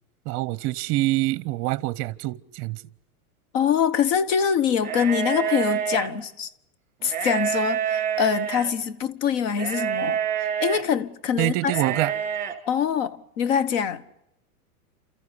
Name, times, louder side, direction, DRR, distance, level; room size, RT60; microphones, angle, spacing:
voice 1, 0.3-2.8 11.4-12.1, right 17 dB, 40° right, 0.8 m, -25 dB
voice 2, 3.5-6.5 7.0-11.7 12.7-14.0, left 7 dB, 55° left, 1.4 m, -24 dB
sound 1, 4.8-6.1 7.0-8.7 9.6-10.8 11.6-12.5, right 9 dB, 20° right, 3.1 m, -27 dB
29.5 x 14.0 x 9.8 m
hypercardioid pair, 135°, 44 cm